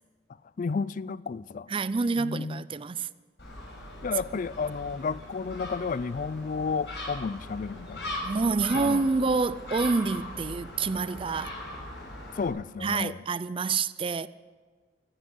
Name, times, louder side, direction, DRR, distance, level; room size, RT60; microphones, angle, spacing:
voice 1, 0.6-1.7 2.2-2.7 4.0-8.1 8.7-9.1 12.3-13.2, left 5 dB, 45° left, 0.4 m, -32 dB
voice 2, 1.7-3.1 8.2-11.6 12.8-14.3, right 4 dB, 30° right, 0.4 m, -27 dB
Gull seagull, 3.4-12.5, left 1 dB, 70° left, 6.4 m, -40 dB
15.0 x 9.9 x 9.6 m
head